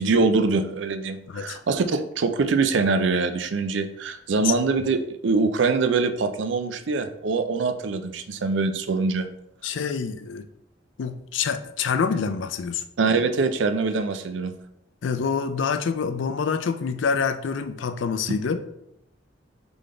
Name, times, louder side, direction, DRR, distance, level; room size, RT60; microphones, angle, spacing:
voice 1, 0.0-9.3 13.0-14.5, right 4 dB, 80° right, 9 dB, 0.4 m, -23 dB
voice 2, 1.3-1.6 4.4-4.5 9.6-10.5 11.0-12.8 15.0-18.6, left 6 dB, 80° left, 10 dB, 0.4 m, -26 dB
3.8 x 3.4 x 3.7 m, 0.78 s
head